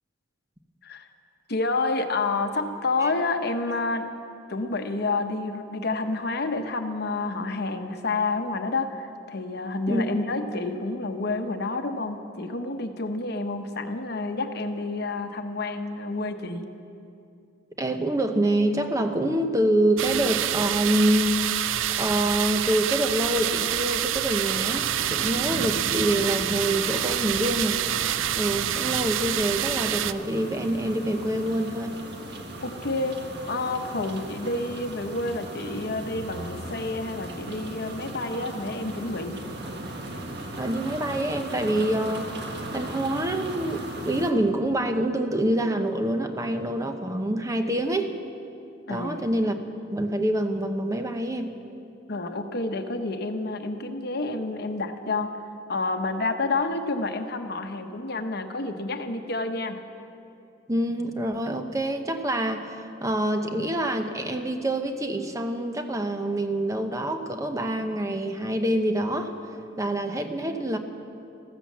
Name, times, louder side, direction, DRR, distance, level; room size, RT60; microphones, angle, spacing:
voice 1, 1.5-4.1 4.5-16.7 32.6-39.4 48.9-49.3 52.1-55.4 55.7-59.8, left 3 dB, 55° left, 7 dB, 1.0 m, -29 dB
voice 2, 9.9-10.2 17.8-21.4 22.0-27.8 28.4-32.0 40.6-42.3 42.7-48.1 48.9-49.6 49.9-51.5 60.7-69.4 69.8-70.8, right 1 dB, 15° right, 6 dB, 0.8 m, -26 dB
Pump engine, 20.0-30.1, right 11 dB, 85° right, 0.4 m, -27 dB
sound 1, 24.4-44.3, right 1 dB, 55° right, 1.5 m, -37 dB
14.5 x 13.0 x 7.3 m, 2.6 s
head